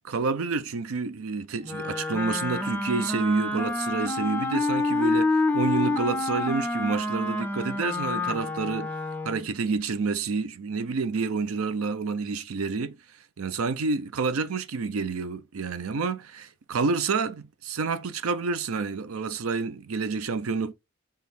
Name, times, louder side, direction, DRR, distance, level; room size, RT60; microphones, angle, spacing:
voice 1, 0.0-8.9 9.2-13.0 13.4-20.7, right 4 dB, 80° right, 0.5 m, -29 dB
Wind instrument woodwind instrument, 1.6-9.5, left 2 dB, 10° left, 0.4 m, -28 dB
5.1 x 2.4 x 4.1 m
head